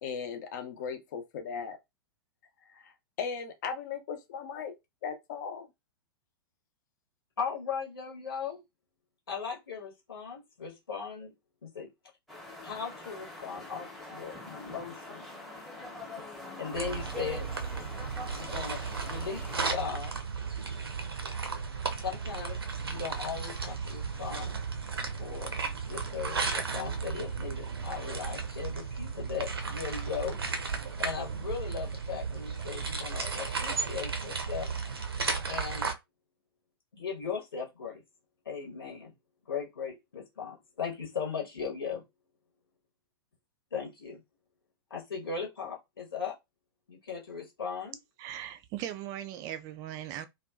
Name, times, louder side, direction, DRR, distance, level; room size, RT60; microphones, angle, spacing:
voice 1, 0.0-1.8 2.7-4.7 5.0-5.7, left 6 dB, 45° left, 0.7 m, -37 dB
voice 2, 7.4-8.6 9.3-11.3 11.6-11.9 12.6-15.3 16.2-16.3 16.6-17.5 18.3-20.1 22.0-22.6 22.8-24.6 25.2-25.5 25.9-30.4 31.0-34.7 35.5-35.9 36.9-38.0 38.4-39.1 39.5-42.0 43.7-44.2 44.9-46.3 46.9-48.0, left 6 dB, 70° left, 1.0 m, -38 dB
sound 1, 12.3-19.6, left 2 dB, ahead, 0.8 m, -44 dB
sound 2, 16.7-35.9, right 5 dB, 75° right, 0.6 m, -34 dB
voice 3, 48.2-50.3, right 11 dB, 30° right, 0.3 m, -39 dB
2.6 x 2.3 x 2.3 m
figure-of-eight pair, 105°, 13 cm